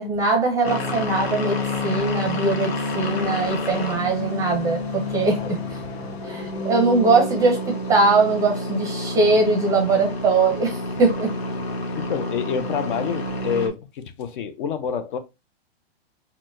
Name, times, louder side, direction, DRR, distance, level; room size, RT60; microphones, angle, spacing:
voice 1, 0.0-5.6 6.2-11.3, right 3 dB, 10° right, 0.6 m, -21 dB
sound 1, 0.6-13.7, left 2 dB, 90° left, 1.0 m, -29 dB
voice 2, 5.4-6.1 11.9-15.2, left 7 dB, 55° left, 0.5 m, -28 dB
4.3 x 2.1 x 2.5 m
hypercardioid pair, 150°, 31 cm